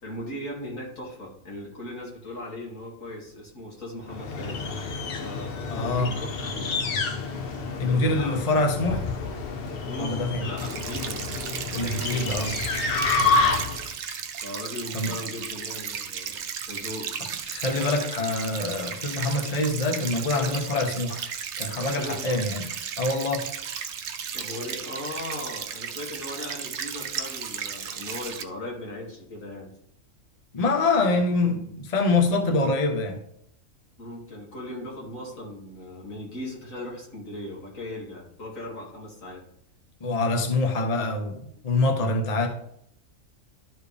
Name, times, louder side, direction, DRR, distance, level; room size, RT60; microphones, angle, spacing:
voice 1, 0.0-4.6 5.2-6.8 7.7-8.7 9.8-11.2 11.8-12.3 13.2-13.4 14.4-17.1 21.9-22.4 24.3-29.7 34.0-39.4, left 1 dB, 80° left, -3 dB, 2.8 m, -38 dB
sound 1, 4.1-13.9, left 4 dB, 55° left, 0.9 m, -29 dB
voice 2, 5.7-6.1 7.8-9.0 10.0-10.4 11.7-12.5 14.9-15.1 17.2-21.2 21.6-22.7 23.0-23.5 30.5-33.2 40.0-42.5, left 2 dB, 30° left, 4 dB, 1.0 m, -25 dB
sound 2, 10.6-28.4, right 7 dB, 65° right, 0.9 m, -35 dB
12.0 x 4.6 x 3.4 m, 0.69 s
omnidirectional pair, 1.4 m